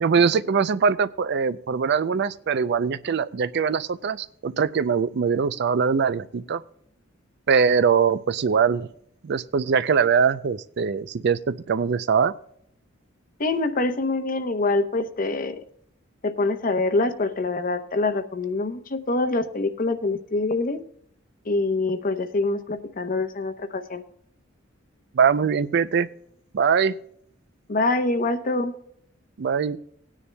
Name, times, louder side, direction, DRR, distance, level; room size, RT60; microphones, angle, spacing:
voice 1, 0.0-6.6 7.5-8.9 9.2-12.3 25.1-26.1 26.5-27.0 29.4-29.8, right 6 dB, 60° right, 15 dB, 0.4 m, -22 dB
voice 2, 13.4-15.6 16.2-20.8 21.4-24.0 27.7-28.7, left 2 dB, 45° left, 9 dB, 0.8 m, -25 dB
19.5 x 9.8 x 2.2 m, 0.70 s
head